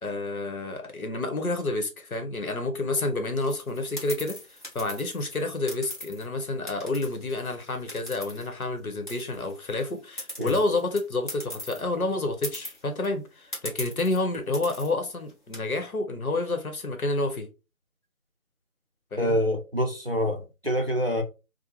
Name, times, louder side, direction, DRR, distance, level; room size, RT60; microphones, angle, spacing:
voice 1, 0.0-17.5 19.1-19.4, left 2 dB, 80° left, 1.0 m, -29 dB
sound 1, 3.4-6.3 6.7-8.8 9.1-11.8 12.1-12.2 12.4-13.0 13.5-14.2 14.5-14.9 15.3-15.6, left 1 dB, 35° left, 1.0 m, -40 dB
voice 2, 19.2-21.2, equal, 45° right, 0.5 m, -26 dB
2.7 x 2.1 x 2.9 m
figure-of-eight pair, 175°, 43 cm